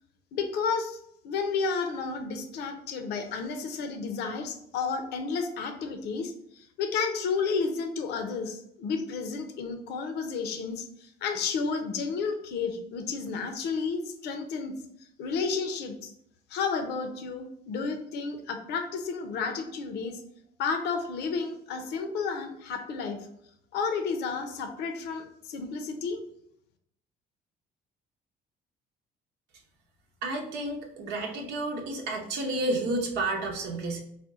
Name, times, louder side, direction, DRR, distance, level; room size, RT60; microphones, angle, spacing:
voice 1, 0.3-1.0 1.2-14.8 15.2-16.1 16.5-20.2 20.6-23.2 23.7-26.2, left 5 dB, 80° left, 6 dB, 0.6 m, -31 dB
voice 2, 30.2-34.0, right 2 dB, 85° right, 1 dB, 0.8 m, -31 dB
4.2 x 2.2 x 3.6 m, 0.73 s
cardioid pair, 110°, 17 cm